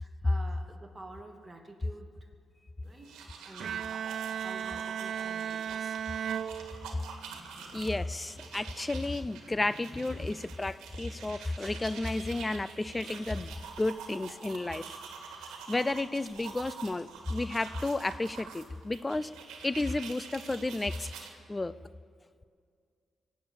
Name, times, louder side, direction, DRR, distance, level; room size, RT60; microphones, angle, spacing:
voice 1, 0.0-2.1 2.8-3.1 3.4-3.9 4.3-6.0 21.3-21.5, right 2 dB, 25° right, 3 dB, 2.3 m, -49 dB
sound 1, 2.9-21.3, right 6 dB, 90° right, 1.7 m, -47 dB
Bowed string instrument, 3.6-7.3, right 8 dB, 70° right, 0.3 m, -36 dB
voice 2, 7.3-15.0 15.7-19.3 19.6-21.1 21.5-21.7, left 2 dB, 20° left, 17 dB, 0.5 m, -32 dB
sound 2, 11.9-19.0, left 2 dB, 65° left, 3.8 m, -64 dB
23.5 x 8.6 x 7.2 m, 2.2 s
cardioid pair, 60°, 0 cm